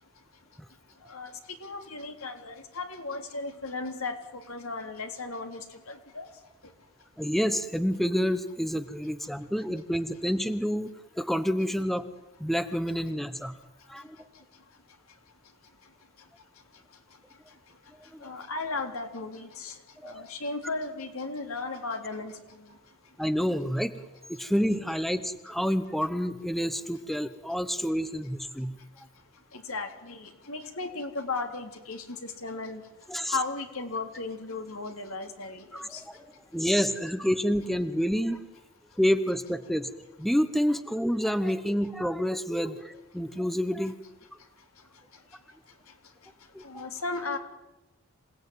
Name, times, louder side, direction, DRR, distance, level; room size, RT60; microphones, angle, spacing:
voice 1, 1.6-4.2 4.5-6.2 18.2-19.7 20.0-22.3 29.5-32.8 33.3-35.7 35.9-36.0 46.6-47.4, left 3 dB, 75° left, 5 dB, 3.3 m, -35 dB
voice 2, 7.2-12.1 12.4-13.5 13.9-14.2 18.1-18.3 20.0-20.2 23.2-23.9 24.3-28.8 33.1-33.4 35.7-36.3 36.5-38.4 39.0-39.9 40.2-43.9 46.5-46.6, equal, ahead, 11 dB, 0.9 m, -28 dB
27.0 x 18.0 x 9.4 m, 1.0 s
head